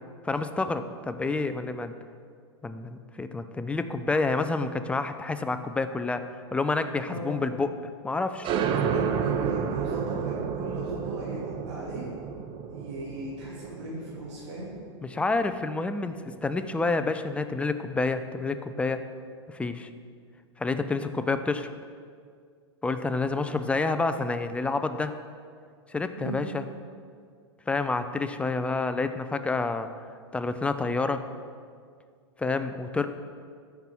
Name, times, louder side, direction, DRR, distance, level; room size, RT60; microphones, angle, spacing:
voice 1, 0.2-1.9 2.6-6.2 6.5-7.7 8.0-8.5 15.0-19.0 19.5-19.9 20.6-21.7 22.8-25.1 25.9-26.6 27.7-29.9 30.3-31.2 32.4-33.1, left 3 dB, 10° left, 9 dB, 0.4 m, -28 dB
voice 2, 7.1-7.4 8.7-12.1 12.7-14.7 26.2-26.4, right 1 dB, 75° right, -7 dB, 2.4 m, -37 dB
sound 1, 8.4-15.7, right 7 dB, 35° right, 0.6 m, -31 dB
14.5 x 5.9 x 3.6 m, 2.1 s
hypercardioid pair, 110°, 15 cm